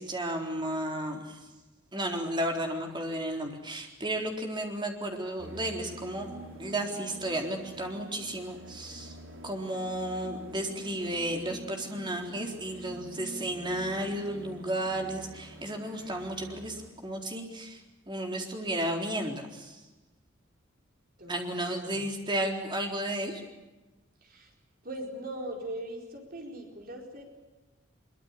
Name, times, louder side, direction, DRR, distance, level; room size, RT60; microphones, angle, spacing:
voice 1, 0.0-1.4 1.9-6.3 6.6-9.1 9.4-19.8 21.3-23.4, right 1 dB, 25° right, 2 dB, 3.9 m, -33 dB
sound 1, 5.4-16.9, equal, 65° right, 4.0 m, -47 dB
voice 2, 21.2-22.1 24.2-24.5 24.8-27.2, right 1 dB, 50° right, 2 dB, 4.5 m, -40 dB
24.0 x 23.5 x 8.3 m, 1.1 s
head